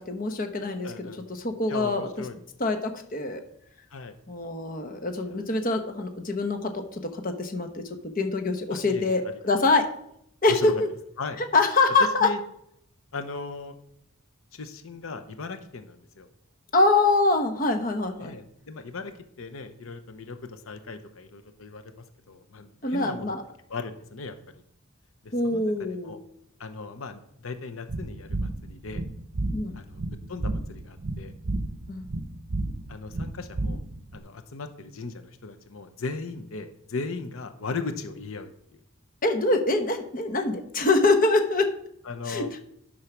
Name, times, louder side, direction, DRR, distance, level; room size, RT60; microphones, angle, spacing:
voice 1, 0.0-1.1 1.4-2.1 2.6-3.4 4.3-7.8 8.2-9.9 10.4-10.9 11.4-12.3 16.7-18.3 22.8-23.4 25.3-26.2 29.5-29.7 31.9-32.1 39.2-41.7 42.3-42.5, left 3 dB, 40° left, 6 dB, 1.0 m, -24 dB
voice 2, 0.8-1.2 1.7-2.4 3.9-4.1 5.3-5.4 8.7-9.2 10.5-10.7 11.2-11.4 12.2-12.4 13.1-13.8 14.5-16.3 18.2-19.1 19.4-23.3 23.7-24.4 25.2-25.7 26.0-26.2 26.6-29.0 29.7-30.0 30.3-31.3 32.9-33.8 34.1-38.5 42.0-42.5, left 4 dB, 85° left, 8 dB, 0.8 m, -37 dB
sound 1, 27.9-34.2, right 2 dB, 55° right, 0.8 m, -32 dB
9.9 x 5.6 x 6.0 m, 0.74 s
head